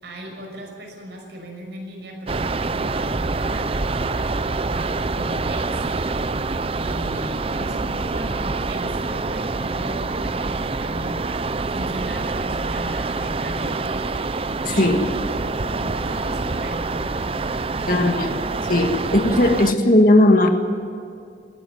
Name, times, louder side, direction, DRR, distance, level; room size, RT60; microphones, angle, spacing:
voice 1, 0.0-4.3 4.8-6.2 6.7-11.4 11.7-14.1 14.7-18.1, equal, 70° right, 0 dB, 6.0 m, -37 dB
sound 1, 2.3-19.7, right 3 dB, 30° right, 0.5 m, -26 dB
voice 2, 14.6-15.0 17.9-18.3 18.7-20.5, left 1 dB, 50° left, 4 dB, 1.8 m, -17 dB
20.0 x 14.0 x 9.4 m, 2.4 s
head